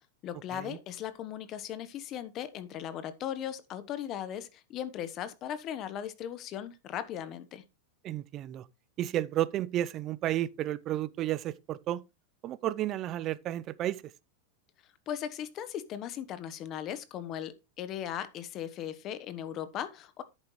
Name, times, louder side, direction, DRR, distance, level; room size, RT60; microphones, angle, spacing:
voice 1, 0.2-7.6 15.1-20.2, left 10 dB, 30° left, 1.1 m, -38 dB
voice 2, 8.0-8.7 9.0-12.0 12.4-14.0, right 13 dB, 30° right, 0.6 m, -32 dB
10.5 x 8.8 x 3.2 m
supercardioid pair, 160°, 0 cm